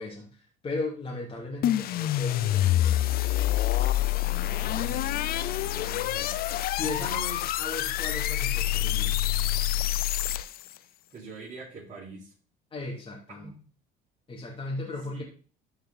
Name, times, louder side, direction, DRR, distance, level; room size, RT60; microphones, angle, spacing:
voice 1, 0.0-3.1 6.7-9.2 12.7-13.5 14.3-15.2, left 2 dB, 25° left, -3 dB, 3.1 m, -36 dB
sound 1, 1.6-10.7, left 13 dB, 50° left, 0.5 m, -27 dB
voice 2, 4.4-6.4 10.8-12.3 13.3-13.6 15.1-15.2, right 4 dB, 40° right, -9 dB, 5.3 m, -45 dB
12.5 x 5.7 x 4.2 m, 0.39 s
supercardioid pair, 100°, 19 cm